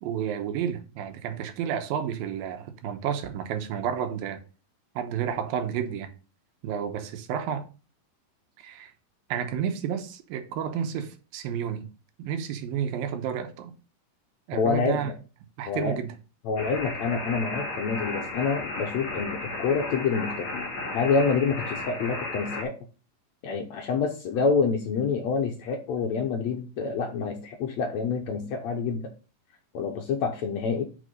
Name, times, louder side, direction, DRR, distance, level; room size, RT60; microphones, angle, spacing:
voice 1, 0.0-4.4 5.0-6.1 6.6-7.7 8.6-8.9 9.3-11.9 12.2-13.7 14.5-15.1 15.6-16.1, right 8 dB, 85° right, 2.7 m, -31 dB
voice 2, 14.5-15.2 15.7-16.0 16.5-22.7 23.4-29.1 29.7-30.8, left 5 dB, 70° left, 1.8 m, -27 dB
sound 1, 16.6-22.6, left 2 dB, 40° left, 3.1 m, -34 dB
6.5 x 5.8 x 5.2 m
omnidirectional pair, 4.0 m